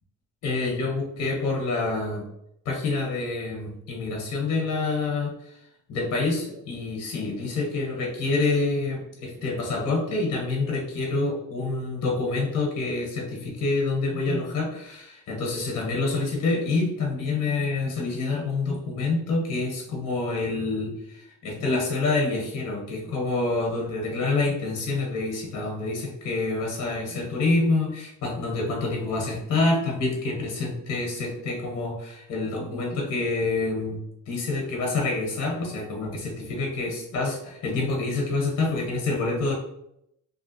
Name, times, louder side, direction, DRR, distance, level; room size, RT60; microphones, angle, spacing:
voice 1, 0.4-2.2 2.6-5.3 5.9-39.5, left 3 dB, 85° left, -1 dB, 1.1 m, -27 dB
3.2 x 2.5 x 2.8 m, 0.78 s
cardioid pair, 90°, 30 cm